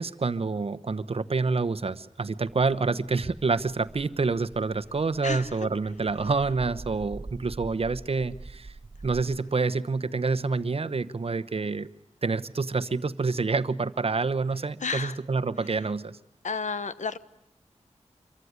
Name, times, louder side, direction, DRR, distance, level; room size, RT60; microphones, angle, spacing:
voice 1, 0.0-8.7 9.0-11.9 12.2-16.2, right 4 dB, 55° right, 11 dB, 1.0 m, -27 dB
sound 1, 2.5-9.4, right 3 dB, 35° right, 1.6 m, -45 dB
voice 2, 5.2-5.7 14.8-15.2 16.4-17.2, left 5 dB, 80° left, 13 dB, 1.1 m, -31 dB
26.0 x 23.0 x 9.6 m, 0.76 s
wide cardioid pair, 100°, 12 cm